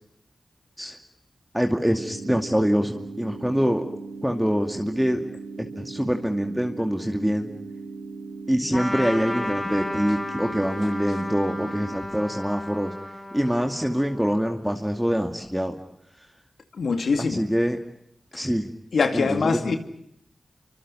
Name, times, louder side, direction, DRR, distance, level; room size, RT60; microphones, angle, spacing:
voice 1, 1.5-3.8 4.2-5.2 5.6-7.5 8.5-12.9 13.3-15.8 17.2-17.8 18.3-18.7 19.1-19.8, equal, 5° right, 2.4 m, -25 dB
sound 1, 2.0-12.0, right 4 dB, 75° right, 5.4 m, -38 dB
Trumpet, 8.7-14.6, left 1 dB, 15° left, 5.6 m, -34 dB
voice 2, 16.8-17.4 18.3-18.4 18.9-19.8, left 4 dB, 85° left, 2.4 m, -23 dB
29.0 x 25.5 x 5.6 m
cardioid pair, 50°, 0 cm